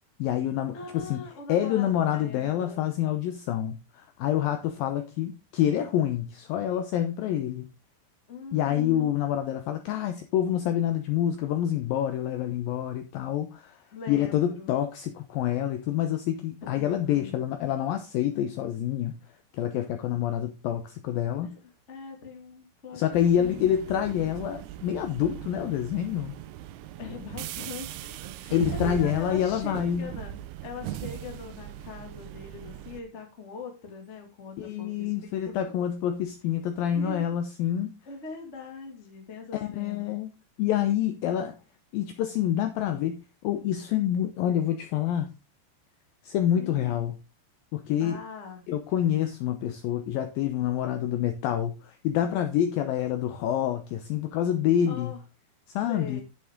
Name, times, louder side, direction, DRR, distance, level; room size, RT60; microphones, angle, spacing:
voice 1, 0.2-7.7 8.5-19.2 19.5-21.6 22.9-26.3 28.5-30.1 34.6-37.9 39.5-40.3 40.6-41.6 41.9-45.3 46.2-47.2 47.7-48.2 48.7-55.1 55.7-56.2, left 10 dB, 80° left, 2.1 m, -27 dB
voice 2, 0.7-2.9 8.3-9.2 13.9-14.7 16.6-17.4 21.4-21.5 21.9-23.7 27.0-28.0 28.4-30.4 30.6-35.3 35.6-35.7 36.8-37.3 38.1-40.1 46.5-47.1 48.0-48.6 54.8-55.2 55.9-56.2, left 4 dB, 35° left, 1.1 m, -42 dB
sound 1, 23.1-33.0, right 13 dB, 80° right, 2.5 m, -39 dB
10.5 x 7.2 x 3.6 m
omnidirectional pair, 4.9 m